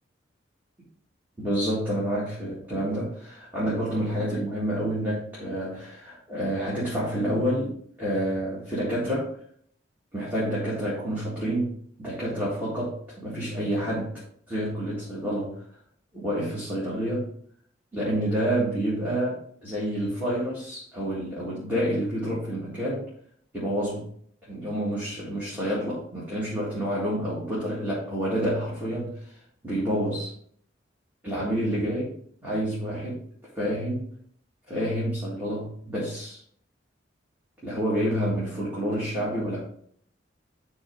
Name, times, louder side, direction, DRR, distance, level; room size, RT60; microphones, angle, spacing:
voice 1, 1.4-9.3 10.1-14.2 14.5-15.6 16.1-17.3 17.9-23.1 23.5-24.1 24.4-29.4 29.6-30.3 31.2-32.2 32.4-33.2 33.5-34.1 34.7-36.4 37.6-39.6, equal, 10° right, -8 dB, 1.9 m, -28 dB
10.0 x 3.7 x 3.6 m, 0.62 s
head